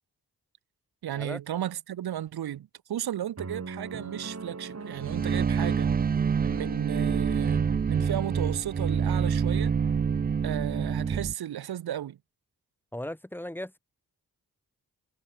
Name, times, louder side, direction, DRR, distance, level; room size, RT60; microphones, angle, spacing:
voice 1, 1.0-5.9 6.4-9.7 10.4-12.2, right 11 dB, 85° right, 0.9 m, -34 dB
sound 1, 3.4-7.5, right 4 dB, 45° right, 4.8 m, -42 dB
sound 2, 5.0-11.3, right 6 dB, 25° right, 0.4 m, -26 dB
voice 2, 12.9-13.8, left 1 dB, 5° left, 2.2 m, -37 dB
cardioid pair, 50°, 37 cm